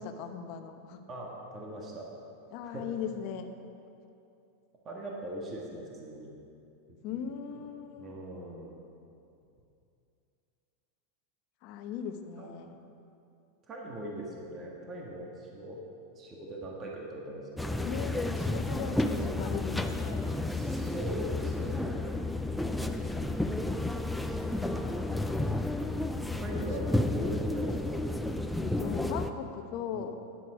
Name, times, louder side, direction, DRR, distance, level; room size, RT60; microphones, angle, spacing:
voice 1, 0.0-1.0 2.5-3.5 7.0-8.1 11.6-12.8 17.8-20.2 26.9-27.1 28.6-30.1, left 7 dB, 45° left, 6 dB, 0.9 m, -39 dB
voice 2, 1.1-2.1 2.6-2.9 4.9-6.3 6.9-7.6 8.0-8.8 12.4-12.6 13.7-15.8 16.2-17.8 18.8-19.5 20.4-22.1 22.7-22.9 24.0-24.9 26.4-28.0 29.9-30.1, right 1 dB, 25° right, -2 dB, 1.6 m, -41 dB
sound 1, 17.6-29.3, left 2 dB, 5° left, 0.4 m, -31 dB
12.5 x 10.5 x 4.9 m, 2.6 s
supercardioid pair, 150°, 0 cm